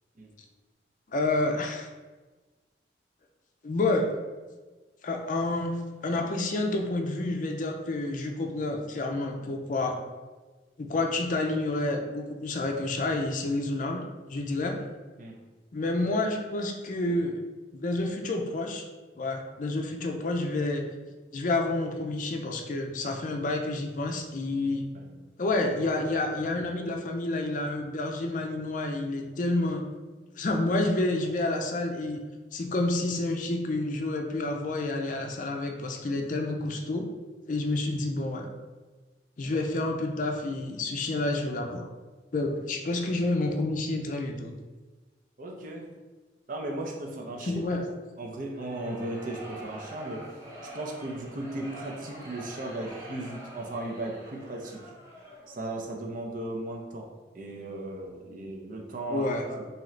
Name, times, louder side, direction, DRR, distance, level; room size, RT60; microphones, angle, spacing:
voice 1, 1.1-1.9 3.6-4.1 5.0-5.7 6.0-10.0 10.8-14.0 14.3-14.8 15.7-17.4 17.7-18.8 19.2-20.8 21.3-24.9 25.4-29.8 30.4-32.2 32.5-37.0 37.5-38.4 39.4-41.9 42.3-44.5 47.5-47.8 59.1-59.4, left 2 dB, 45° left, 3 dB, 0.4 m, -29 dB
voice 2, 45.4-46.0 46.5-47.8 48.2-50.2 50.6-54.8 55.5-57.1 57.3-59.7, right 2 dB, 50° right, 1 dB, 0.6 m, -36 dB
sound 1, 48.4-55.7, right 1 dB, 15° right, 0.9 m, -45 dB
3.7 x 2.8 x 3.2 m, 1.3 s
head